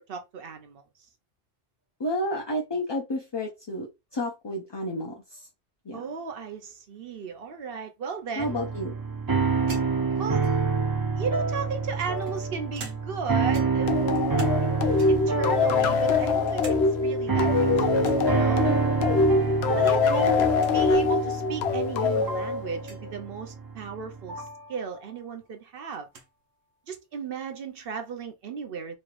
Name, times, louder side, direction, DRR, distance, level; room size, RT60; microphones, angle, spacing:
voice 1, 0.1-0.8 5.9-8.6 10.2-10.5 11.2-14.0 15.1-18.7 19.7-20.3 20.7-26.1 26.9-29.0, right 6 dB, 60° right, 0.8 m, -35 dB
voice 2, 2.0-5.5 5.9-6.0 8.4-8.9 20.1-20.4, left 1 dB, 35° left, 0.5 m, -31 dB
sound 1, 8.4-24.6, right 5 dB, 30° right, 0.4 m, -28 dB
sound 2, 9.7-10.8 11.7-13.3 13.5-14.7 15.0-15.4 15.8-16.8 17.1-17.2 18.0-18.3 19.7-20.1 20.3-20.4 20.6-20.8 21.6-21.7 22.8-23.0 24.7-24.8 25.2-26.3, right 4 dB, 80° right, 1.2 m, -46 dB
sound 3, 13.9-23.1, left 4 dB, 75° left, 0.8 m, -24 dB
3.2 x 3.1 x 2.4 m
omnidirectional pair, 1.1 m